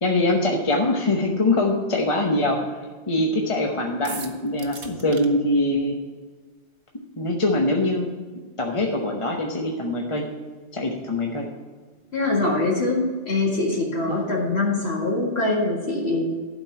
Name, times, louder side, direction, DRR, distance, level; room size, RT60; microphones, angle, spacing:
voice 1, 0.0-6.0 7.2-8.1 8.6-10.3 10.7-11.5 14.1-14.2, left 2 dB, 30° left, 0 dB, 0.9 m, -23 dB
sound 1, 4.0-5.3, right 5 dB, 85° right, 1.3 m, -37 dB
voice 2, 12.1-16.3, left 2 dB, 65° left, -3 dB, 2.2 m, -23 dB
12.0 x 4.5 x 8.2 m, 1.4 s
omnidirectional pair, 1.2 m